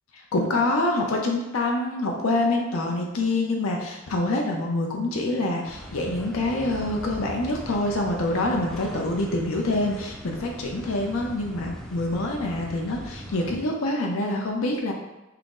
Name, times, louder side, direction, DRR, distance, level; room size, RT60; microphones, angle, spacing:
voice 1, 0.3-14.9, left 2 dB, 80° left, 0 dB, 0.6 m, -26 dB
sound 1, 5.7-13.6, equal, ahead, 0.3 m, -40 dB
5.7 x 2.0 x 3.7 m, 1.0 s
head